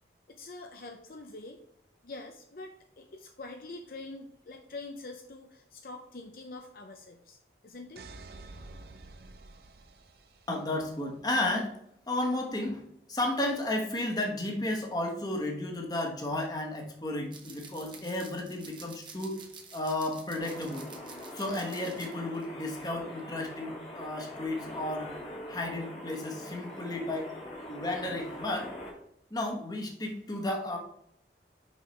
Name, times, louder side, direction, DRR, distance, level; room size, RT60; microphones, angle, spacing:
voice 1, 0.3-1.6 2.0-7.4 7.6-8.0, left 2 dB, 55° left, 4 dB, 0.6 m, -45 dB
sound 1, 8.0-10.8, right 2 dB, 60° right, 0.6 m, -49 dB
voice 2, 10.5-11.7 12.1-19.4 19.7-20.9 21.3-25.1 25.5-27.3 27.7-28.7 29.3-30.8, left 1 dB, 20° left, 1 dB, 1.2 m, -33 dB
sound 2, 17.3-22.5 22.8-23.0, right 5 dB, 25° right, 1.1 m, -50 dB
sound 3, 20.4-28.9, left 1 dB, 35° left, 1.6 m, -43 dB
6.2 x 5.6 x 3.2 m, 0.73 s
head